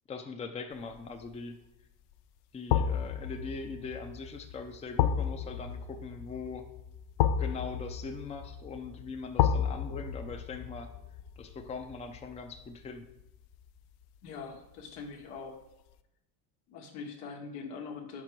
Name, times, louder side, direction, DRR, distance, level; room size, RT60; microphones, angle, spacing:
voice 1, 0.1-1.5 2.5-6.6 7.4-10.9 11.4-13.1, left 4 dB, 15° left, 5 dB, 0.5 m, -41 dB
sound 1, 0.9-1.3 2.7-13.7 14.0-14.2, left 9 dB, 60° left, 0.5 m, -33 dB
voice 2, 14.2-15.6 16.7-18.2, left 5 dB, 80° left, 2 dB, 1.3 m, -42 dB
4.9 x 4.7 x 4.5 m, 0.88 s
supercardioid pair, 85°, 46 cm